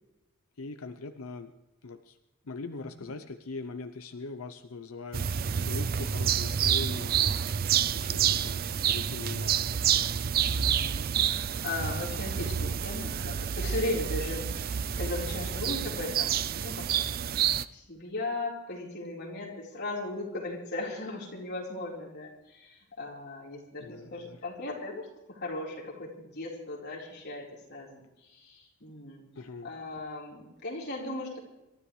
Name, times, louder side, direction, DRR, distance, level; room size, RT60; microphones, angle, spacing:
voice 1, 0.6-1.5 1.8-2.2 2.5-7.1 8.0-9.7 23.8-24.4 29.4-29.7, left 3 dB, 90° left, 9 dB, 0.7 m, -41 dB
voice 2, 2.6-3.1 10.6-16.9 17.7-26.1 26.3-29.2 29.6-31.4, left 2 dB, 50° left, -3 dB, 4.3 m, -37 dB
sound 1, 5.1-17.6, right 8 dB, 45° right, 0.4 m, -28 dB
26.5 x 13.0 x 3.3 m, 0.99 s
head